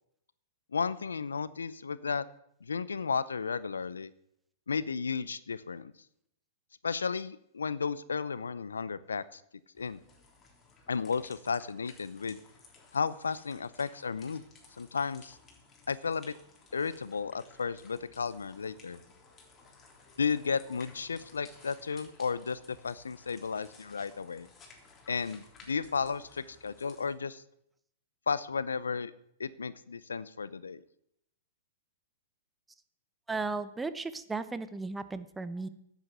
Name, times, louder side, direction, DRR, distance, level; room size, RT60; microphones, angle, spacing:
voice 1, 0.7-2.3 2.6-4.1 4.7-5.9 6.8-9.4 9.8-10.0 10.9-12.4 12.9-14.4 14.8-15.4 15.9-16.3 16.7-19.0 20.2-24.5 25.1-27.4 28.3-29.1 29.4-30.8, left 5 dB, 85° left, 17 dB, 0.6 m, -33 dB
sound 1, 9.7-27.1, left 4 dB, 20° left, 3.6 m, -57 dB
voice 2, 33.3-35.7, right 3 dB, 10° right, 13 dB, 0.9 m, -35 dB
10.5 x 8.2 x 8.0 m, 0.75 s
hypercardioid pair, 110°, 0 cm